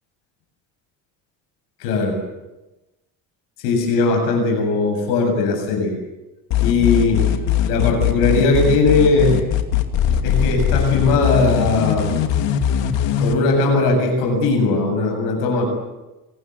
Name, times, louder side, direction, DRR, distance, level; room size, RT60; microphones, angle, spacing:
voice 1, 1.8-2.2 3.6-5.9 6.6-7.2 7.7-9.4 10.2-12.1 13.2-15.7, left 3 dB, 90° left, 3 dB, 7.9 m, -18 dB
sound 1, 6.5-13.3, left 9 dB, 75° left, 2.6 m, -20 dB
27.0 x 19.5 x 8.4 m, 1.0 s
hypercardioid pair, 60°, 45 cm